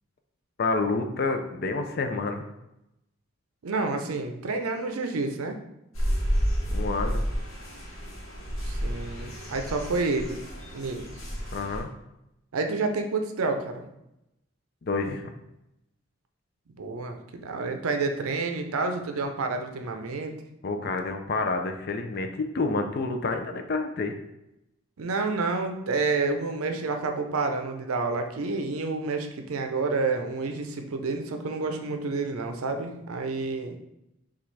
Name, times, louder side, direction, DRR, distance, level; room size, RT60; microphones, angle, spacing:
voice 1, 0.6-2.5 6.7-7.2 11.5-11.9 14.8-15.3 20.6-24.1, left 3 dB, 45° left, 6 dB, 0.4 m, -28 dB
voice 2, 3.6-5.6 8.6-10.4 10.7-11.0 12.5-13.8 16.8-17.2 17.4-20.4 25.0-33.8, right 3 dB, 85° right, 5 dB, 0.5 m, -29 dB
sound 1, 5.9-11.8, equal, 70° left, 1.1 m, -30 dB
5.9 x 2.4 x 3.2 m, 0.87 s
head